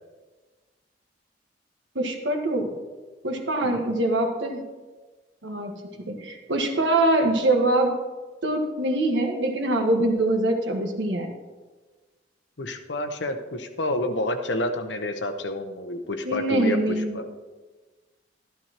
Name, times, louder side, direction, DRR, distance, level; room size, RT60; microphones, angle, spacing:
voice 1, 1.9-2.7 3.2-4.6 5.4-5.8 6.1-7.9 8.4-11.3 16.2-17.2, right 1 dB, 90° right, 4 dB, 1.5 m, -24 dB
voice 2, 12.6-17.2, left 1 dB, 85° left, 7 dB, 1.0 m, -29 dB
12.5 x 11.5 x 3.0 m, 1.3 s
head